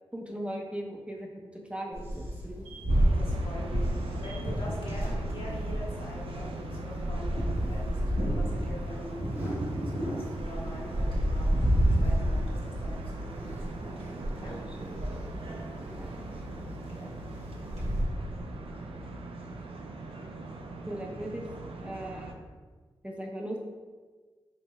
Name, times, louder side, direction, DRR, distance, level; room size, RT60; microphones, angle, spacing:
voice 1, 0.1-2.6 14.4-14.5 14.8-15.2 15.5-15.7 16.0-16.4 20.9-21.5 21.8-22.4 23.0-23.6, right 1 dB, 10° right, 0 dB, 0.7 m, -39 dB
sound 1, 1.9-18.0, equal, 85° right, 1.3 m, -31 dB
sound 2, 2.9-22.3, right 2 dB, 65° right, 0.5 m, -41 dB
voice 2, 3.1-14.0 14.4-14.6 16.9-17.2, left 1 dB, 65° left, -5 dB, 1.4 m, -44 dB
4.8 x 2.0 x 4.5 m, 1.4 s
cardioid pair, 45°, 10 cm